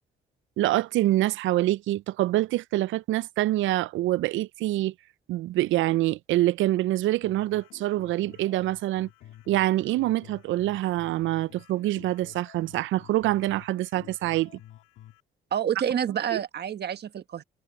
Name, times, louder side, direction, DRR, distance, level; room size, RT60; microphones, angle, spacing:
voice 1, 0.6-4.9 5.3-9.1 9.5-14.5 16.3-16.4, right 16 dB, 80° right, 0.4 m, -25 dB
sound 1, 7.2-15.2, left 13 dB, 85° left, 1.5 m, -50 dB
voice 2, 15.5-17.4, right 9 dB, 55° right, 1.5 m, -28 dB
cardioid pair, 90°, 20 cm